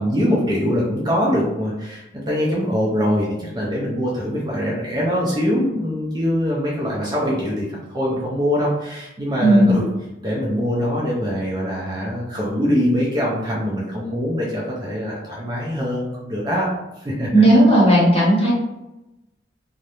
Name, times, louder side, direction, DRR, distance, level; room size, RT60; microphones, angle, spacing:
voice 1, 0.0-9.8 10.2-16.7 17.0-17.3, equal, 20° right, -5 dB, 0.4 m, -23 dB
voice 2, 9.4-9.8 17.3-18.5, right 1 dB, 30° left, -7 dB, 0.9 m, -14 dB
2.4 x 2.0 x 2.9 m, 0.95 s
head